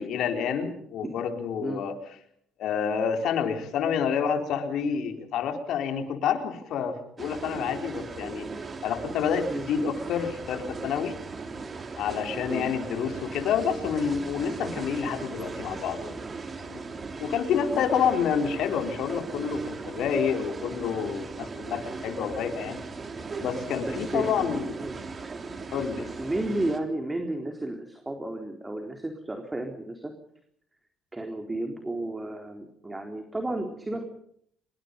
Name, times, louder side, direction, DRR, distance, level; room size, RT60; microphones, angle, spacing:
voice 1, 0.0-1.9 2.6-8.5 8.8-11.1 12.0-16.2 16.6-16.8 17.2-22.8 23.4-24.8 25.7-26.1, left 7 dB, 70° left, 6 dB, 4.1 m, -28 dB
sound 1, 7.2-26.8, right 4 dB, 35° right, 3.6 m, -38 dB
voice 2, 23.8-25.0 25.9-30.1 31.1-34.0, right 1 dB, 15° right, 4 dB, 3.9 m, -33 dB
26.0 x 22.5 x 5.4 m, 0.65 s
supercardioid pair, 75°, 0 cm